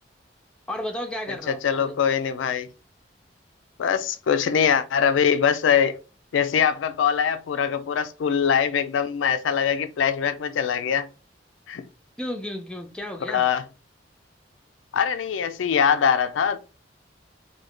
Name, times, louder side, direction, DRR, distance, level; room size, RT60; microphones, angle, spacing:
voice 1, 0.7-1.9 12.2-13.5, left 1 dB, 5° left, 0.5 m, -33 dB
voice 2, 1.5-2.7 3.8-6.0 6.3-11.1 11.7-11.9 13.3-13.6 14.9-16.6, left 7 dB, 85° left, 0.4 m, -22 dB
3.2 x 2.2 x 3.7 m
head